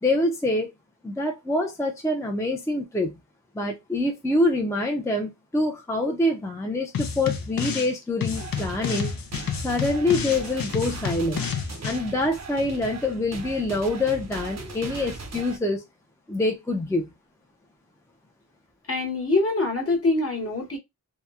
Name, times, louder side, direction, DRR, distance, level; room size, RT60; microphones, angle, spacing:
voice 1, 0.0-0.7 1.0-3.2 3.5-9.1 9.6-11.6 11.8-15.8 16.3-17.1, left 2 dB, 10° left, 0.4 m, -25 dB
sound 1, 6.9-7.9 8.2-12.0, left 7 dB, 80° left, 0.5 m, -30 dB
sound 2, 8.3-15.6, right 3 dB, 50° right, 0.5 m, -39 dB
voice 2, 18.9-20.8, left 2 dB, 40° left, 1.0 m, -24 dB
2.9 x 2.0 x 2.3 m
wide cardioid pair, 70°, 35 cm